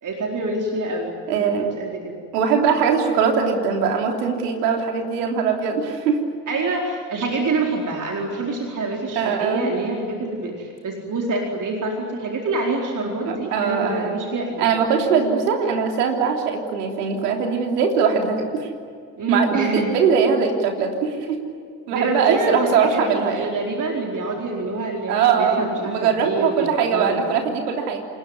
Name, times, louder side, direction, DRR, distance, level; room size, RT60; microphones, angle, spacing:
voice 1, 0.0-2.2 6.5-14.7 19.2-20.0 21.9-27.2, right 2 dB, 40° right, 0 dB, 4.5 m, -26 dB
voice 2, 1.3-1.7 2.3-6.2 9.2-9.7 13.2-14.3 14.6-18.7 19.3-21.4 21.9-23.5 25.1-28.0, right 6 dB, 75° right, 3 dB, 3.4 m, -21 dB
27.5 x 19.5 x 9.8 m, 2.3 s
figure-of-eight pair, 50°, 48 cm